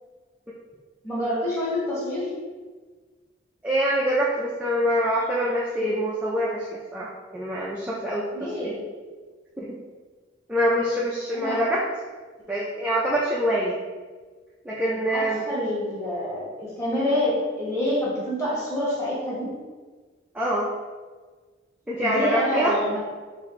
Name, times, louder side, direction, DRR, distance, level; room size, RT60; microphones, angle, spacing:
voice 1, 1.0-2.3 8.3-8.8 11.3-11.6 15.1-19.5 22.0-23.0, left 1 dB, 15° left, -8 dB, 1.3 m, -27 dB
voice 2, 3.6-8.7 9.6-9.8 10.5-11.9 12.5-13.8 14.6-15.5 20.3-20.7 21.9-22.8, equal, 5° right, -6 dB, 0.4 m, -25 dB
4.1 x 2.6 x 3.1 m, 1.4 s
head